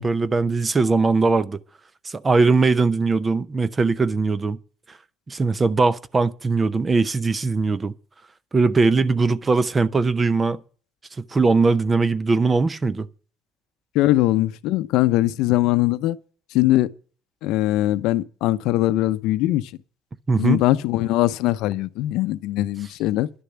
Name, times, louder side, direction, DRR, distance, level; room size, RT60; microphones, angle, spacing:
voice 1, 0.0-1.6 2.0-4.6 5.3-7.9 8.5-10.6 11.3-13.1 20.3-20.6, right 3 dB, 20° right, 0.6 m, -20 dB
voice 2, 13.9-16.2 16.5-16.9 17.4-19.7 20.4-23.3, left 16 dB, 80° left, 0.7 m, -21 dB
11.0 x 6.8 x 8.6 m
cardioid pair, 145°, 0 cm